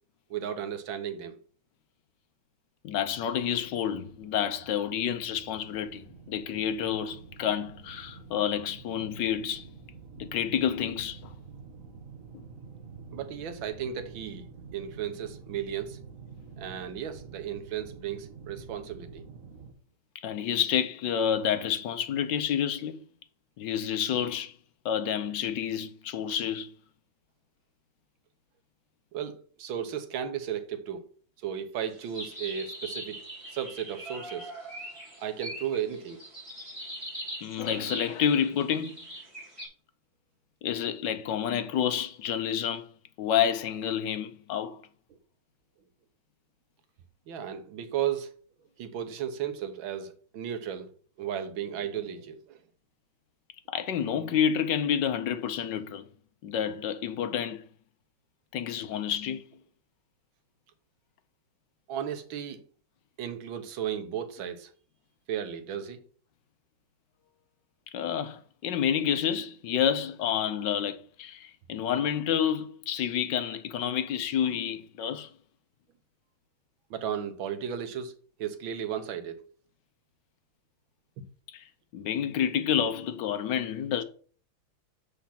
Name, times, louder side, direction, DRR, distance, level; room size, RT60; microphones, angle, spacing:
voice 1, 0.3-1.4 13.1-14.4 14.7-16.0 16.6-19.2 29.1-31.0 31.4-33.2 33.5-34.5 35.2-36.2 47.3-48.3 48.8-50.9 51.2-52.6 61.9-62.6 63.2-64.7 65.3-66.0 76.9-78.1 78.4-79.4 81.2-81.3, right 9 dB, 80° right, 1.7 m, -34 dB
voice 2, 2.8-9.7 10.2-11.2 20.1-23.0 23.6-24.6 24.8-26.7 37.4-39.0 40.6-42.9 43.2-44.8 53.7-56.1 56.4-57.6 58.5-59.4 67.9-75.3 81.5-81.6 81.9-84.0, left 9 dB, 70° left, 1.3 m, -29 dB
sound 1, 3.3-19.7, right 5 dB, 50° right, 1.4 m, -48 dB
sound 2, 31.9-39.7, right 1 dB, 15° right, 3.2 m, -41 dB
7.1 x 5.0 x 5.8 m
omnidirectional pair, 2.1 m